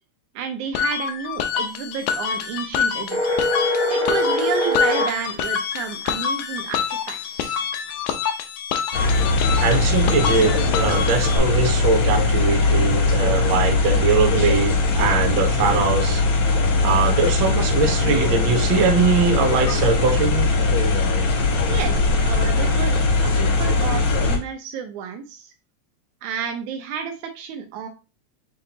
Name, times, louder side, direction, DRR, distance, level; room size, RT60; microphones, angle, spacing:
voice 1, 0.4-3.2 3.9-7.6 21.7-25.5 26.2-27.9, right 7 dB, 90° right, 5 dB, 2.2 m, -31 dB
sound 1, 0.7-11.4, left 7 dB, 85° left, 1.4 m, -26 dB
sound 2, 3.1-5.2, left 1 dB, 15° right, 0.8 m, -22 dB
sound 3, 8.9-24.4, left 3 dB, 70° left, 1.2 m, -20 dB
voice 2, 9.6-16.2 16.8-20.5, right 5 dB, 70° right, 3 dB, 1.2 m, -21 dB
6.9 x 2.6 x 2.8 m, 0.31 s
omnidirectional pair, 3.3 m